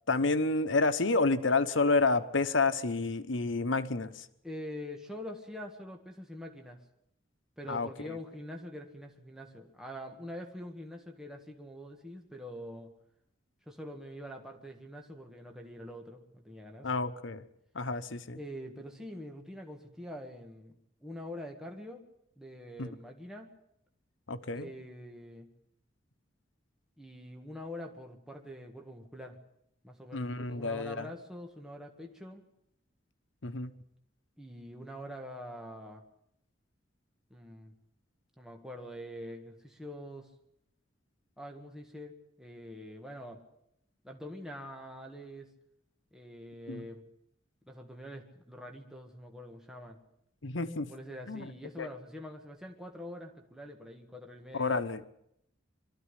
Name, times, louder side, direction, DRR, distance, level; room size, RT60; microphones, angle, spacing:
voice 1, 0.1-4.1 7.7-7.9 16.8-17.4 17.7-18.4 22.8-22.9 24.3-24.7 30.1-30.9 33.4-33.7 46.7-46.8 50.4-50.9 51.3-51.5 51.8-51.9 54.5-55.0, left 3 dB, 80° left, 11 dB, 1.1 m, -29 dB
voice 2, 4.4-6.8 7.6-12.9 13.7-16.9 18.3-22.0 22.4-23.5 24.5-25.5 27.0-29.4 29.8-32.4 34.4-36.0 37.3-37.7 38.4-40.3 41.4-43.4 44.0-45.5 46.1-47.0 47.7-50.0 50.9-54.8, equal, 5° right, 3 dB, 1.8 m, -45 dB
23.5 x 13.5 x 9.9 m, 0.76 s
head